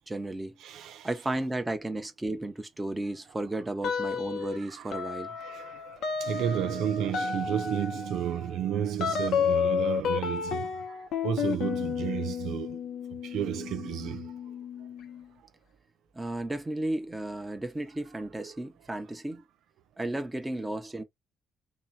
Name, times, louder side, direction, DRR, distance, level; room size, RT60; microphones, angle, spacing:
voice 1, 0.1-0.6 1.0-5.4 16.1-19.4 20.0-21.0, right 1 dB, 15° right, 1.0 m, -34 dB
voice 2, 0.6-1.1 4.5-10.7 11.2-12.8 13.2-14.3 18.4-18.5, right 10 dB, 80° right, 0.6 m, -32 dB
sound 1, 3.8-4.6 4.9-15.2, left 7 dB, 75° left, 1.0 m, -32 dB
3.0 x 3.0 x 4.2 m
cardioid pair, 90°, 0 cm